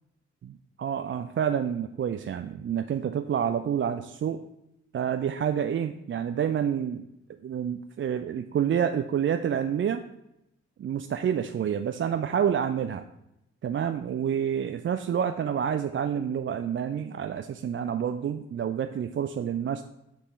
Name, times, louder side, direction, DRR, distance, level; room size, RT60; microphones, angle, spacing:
voice 1, 0.4-4.4 4.9-7.0 7.4-10.0 10.8-13.0 13.6-19.8, right 8 dB, 40° right, 8 dB, 0.4 m, -28 dB
5.3 x 4.3 x 5.2 m, 0.85 s
supercardioid pair, 40°, 31 cm